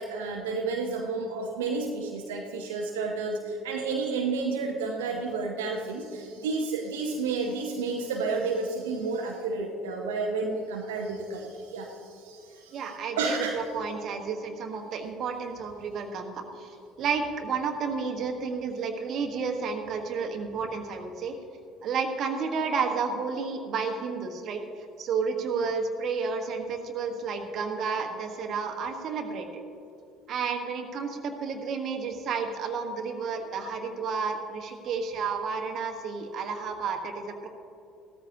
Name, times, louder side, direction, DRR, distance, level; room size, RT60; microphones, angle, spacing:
voice 1, 0.0-12.9 13.2-13.6, right 4 dB, 75° right, 0 dB, 0.9 m, -31 dB
voice 2, 12.7-21.4 21.8-24.6 25.0-29.5 30.3-37.5, right 5 dB, 50° right, 4 dB, 1.3 m, -31 dB
15.5 x 13.5 x 2.8 m, 2.7 s
figure-of-eight pair, 55°, 0 cm